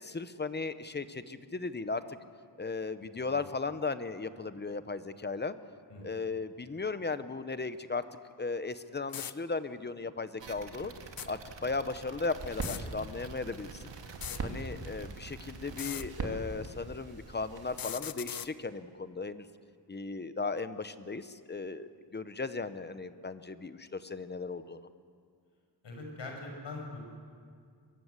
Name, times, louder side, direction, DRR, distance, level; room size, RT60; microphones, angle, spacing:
voice 1, 0.0-2.0 2.6-5.5 6.0-8.0 8.4-10.9 11.3-13.8 14.4-19.5 19.9-24.9, left 4 dB, 25° left, 12 dB, 0.8 m, -36 dB
voice 2, 5.9-6.2 25.8-27.0, left 2 dB, 90° left, 1 dB, 6.2 m, -43 dB
sound 1, 8.7-8.8 9.1-9.3 11.0-11.3 12.5-12.8 14.1-14.4 15.7-16.0 17.7-18.5, left 9 dB, 55° left, 0.7 m, -39 dB
sound 2, 10.4-15.9, right 5 dB, 90° right, 1.9 m, -48 dB
sound 3, 12.4-17.8, right 3 dB, 60° right, 2.6 m, -42 dB
23.5 x 21.0 x 8.1 m, 2.2 s
wide cardioid pair, 170°, 43 cm